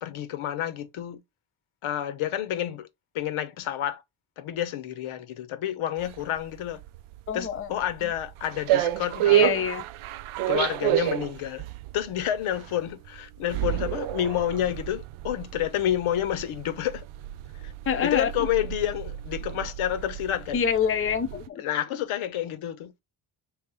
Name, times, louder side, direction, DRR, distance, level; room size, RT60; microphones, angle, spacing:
voice 1, 0.0-1.2 1.8-2.9 3.1-4.0 4.4-6.8 7.3-9.6 10.5-11.7 11.9-17.1 17.5-17.7 18.0-20.6 21.6-22.9, left 11 dB, 85° left, 0.8 m, -29 dB
sound 1, 6.0-21.5, right 13 dB, 90° right, 0.6 m, -30 dB
voice 2, 7.3-7.7 9.3-9.8 17.9-18.3 20.5-21.6, left 7 dB, 30° left, 0.5 m, -26 dB
3.4 x 3.2 x 4.7 m
wide cardioid pair, 155°, 48 cm